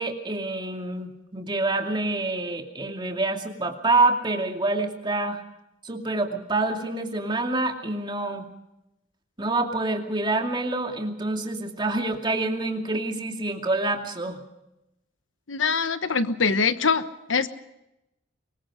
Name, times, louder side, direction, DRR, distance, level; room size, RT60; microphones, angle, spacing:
voice 1, 0.0-5.4 5.8-8.5 9.4-14.4, right 2 dB, 25° right, 3 dB, 2.5 m, -27 dB
voice 2, 15.5-17.0 17.3-17.5, left 5 dB, 85° left, 11 dB, 1.2 m, -23 dB
24.5 x 22.0 x 5.1 m, 0.90 s
head